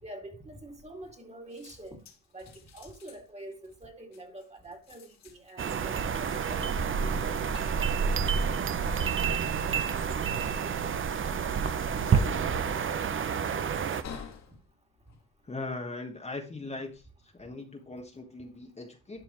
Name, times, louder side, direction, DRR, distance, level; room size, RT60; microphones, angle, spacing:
voice 1, 0.0-2.0 2.3-7.4, right 1 dB, 20° right, 2.4 m, -46 dB
sound 1, 0.7-1.2 1.5-16.1 16.6-17.0, left 6 dB, 65° left, 2.4 m, -52 dB
sound 2, 5.6-14.0, right 6 dB, 40° right, 0.9 m, -29 dB
voice 2, 11.9-12.5 15.4-19.2, left 2 dB, 20° left, 1.3 m, -40 dB
11.5 x 5.4 x 3.1 m
cardioid pair, 90°, 30 cm